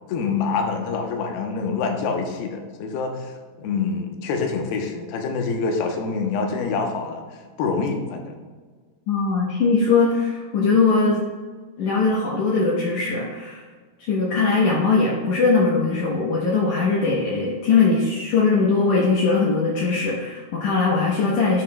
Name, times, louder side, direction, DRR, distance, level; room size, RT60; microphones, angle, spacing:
voice 1, 0.1-3.3 3.6-7.2 7.6-8.3, left 4 dB, 85° left, 3 dB, 2.8 m, -26 dB
voice 2, 9.1-11.2 11.8-13.6 14.0-21.6, left 4 dB, 70° left, -4 dB, 2.0 m, -20 dB
10.5 x 6.1 x 2.2 m, 1.5 s
omnidirectional pair, 4.4 m